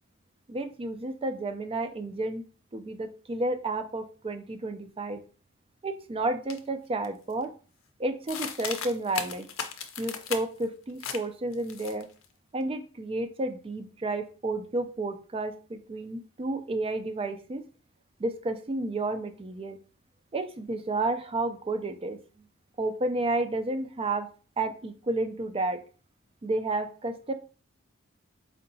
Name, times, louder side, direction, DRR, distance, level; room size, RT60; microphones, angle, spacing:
voice 1, 0.5-2.4 2.7-5.2 5.8-7.5 8.0-9.5 10.0-12.1 12.5-17.7 18.2-19.8 20.3-22.5 22.8-24.3 24.6-25.8 26.4-27.3, right 2 dB, 25° right, 8 dB, 0.4 m, -31 dB
sound 1, 6.5-6.6 7.0-7.4 8.3-10.6 11.0-11.2 11.5-12.2, left 7 dB, 80° left, 0.5 m, -36 dB
4.4 x 2.8 x 2.7 m, 0.38 s
head